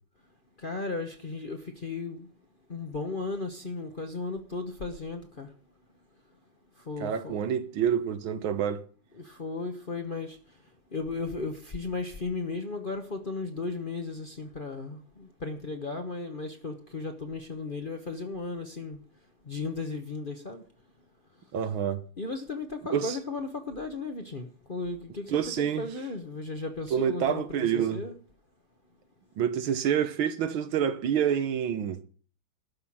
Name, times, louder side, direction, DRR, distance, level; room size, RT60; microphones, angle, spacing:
voice 1, 0.6-2.3 2.7-5.5 6.9-7.4 9.1-10.4 10.9-19.0 19.5-20.6 22.2-28.1, left 3 dB, 35° left, 0.9 m, -35 dB
voice 2, 7.0-8.8 21.5-22.0 22.9-23.2 25.3-25.8 26.9-28.0 29.4-32.0, right 8 dB, 80° right, 1.8 m, -27 dB
12.5 x 5.8 x 8.6 m
omnidirectional pair, 2.2 m